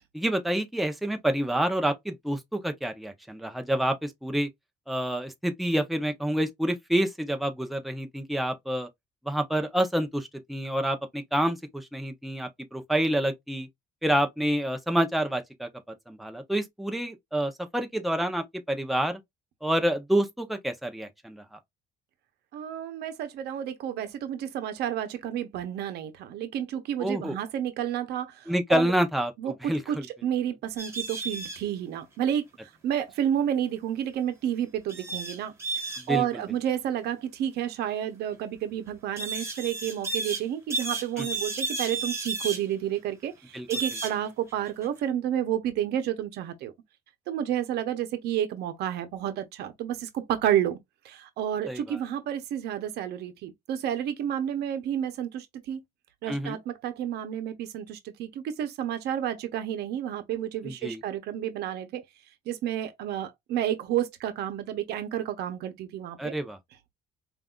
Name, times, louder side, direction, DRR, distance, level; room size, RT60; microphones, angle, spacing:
voice 1, 0.1-4.5 4.9-8.9 9.2-13.7 14.0-15.7 16.1-19.2 19.6-21.6 27.0-27.4 28.5-30.1 36.1-36.2 41.2-41.3 43.5-43.7 51.7-52.0 56.3-56.6 60.6-61.0 66.2-66.6, right 1 dB, ahead, 0.8 m, -28 dB
voice 2, 22.5-28.9 29.4-32.4 32.8-35.5 36.1-46.7 47.3-50.8 51.0-55.8 56.2-62.0 62.5-66.3, right 10 dB, 75° right, 0.8 m, -30 dB
sound 1, 30.8-31.6 34.9-36.1 39.2-40.4 40.7-42.6 43.7-44.2 44.5-44.9, right 3 dB, 15° right, 1.6 m, -32 dB
5.3 x 2.6 x 2.4 m
cardioid pair, 110°, 17 cm